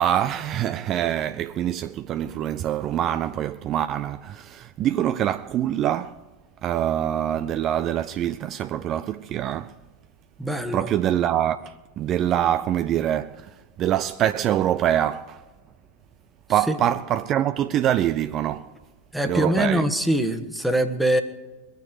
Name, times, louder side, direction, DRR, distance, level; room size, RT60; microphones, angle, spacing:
voice 1, 0.0-6.2 6.6-9.7 10.7-15.4 16.5-18.7 19.3-19.8, right 11 dB, 35° right, 0.4 m, -25 dB
voice 2, 10.4-10.9 16.7-16.8 19.1-21.2, right 1 dB, ahead, 1.2 m, -23 dB
22.5 x 9.0 x 4.9 m
figure-of-eight pair, 90°, 0 cm